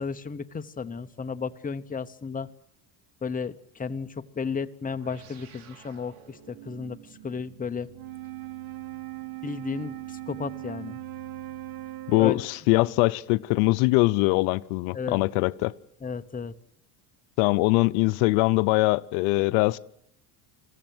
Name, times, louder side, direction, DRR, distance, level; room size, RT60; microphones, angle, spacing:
voice 1, 0.0-2.5 3.2-7.9 9.4-11.0 12.2-12.4 14.9-15.2 16.0-16.5, left 5 dB, 15° left, 0.9 m, -33 dB
sound 1, 4.8-13.7, right 4 dB, 85° right, 3.3 m, -52 dB
Wind instrument woodwind instrument, 7.9-12.7, right 21 dB, 50° right, 0.9 m, -39 dB
voice 2, 12.1-15.7 17.4-19.8, left 22 dB, 85° left, 0.7 m, -22 dB
22.0 x 15.0 x 7.8 m
supercardioid pair, 100°, 48 cm